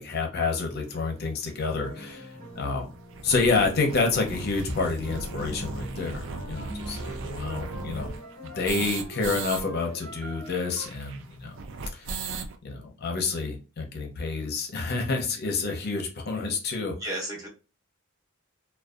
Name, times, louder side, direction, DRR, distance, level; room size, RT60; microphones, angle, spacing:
voice 1, 0.0-2.9 3.2-6.2 6.5-8.1 8.4-11.6 11.9-12.2 12.6-16.9, left 4 dB, 50° left, 2 dB, 0.6 m, -28 dB
sound 1, 0.9-1.0 1.7-1.8 2.1-2.2 2.5-2.6 2.9-9.6 9.9-10.0 10.2-12.6, right 4 dB, 60° right, 0.4 m, -37 dB
sound 2, 1.8-3.8 5.0-10.9, right 1 dB, 80° right, 1.1 m, -42 dB
voice 2, 17.0-17.5, right 1 dB, 15° right, -2 dB, 0.7 m, -34 dB
2.6 x 2.2 x 2.3 m, 0.33 s
head